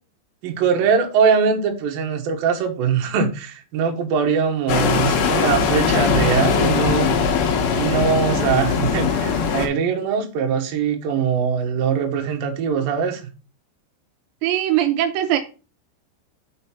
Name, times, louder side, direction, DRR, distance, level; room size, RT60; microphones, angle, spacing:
voice 1, 0.4-7.2 7.7-13.2, right 6 dB, 65° right, 2.6 m, -21 dB
sound 1, 4.7-9.7, left 6 dB, 70° left, 2.5 m, -20 dB
voice 2, 14.4-15.4, right 12 dB, 85° right, 2.8 m, -20 dB
6.5 x 3.9 x 5.7 m
omnidirectional pair, 5.1 m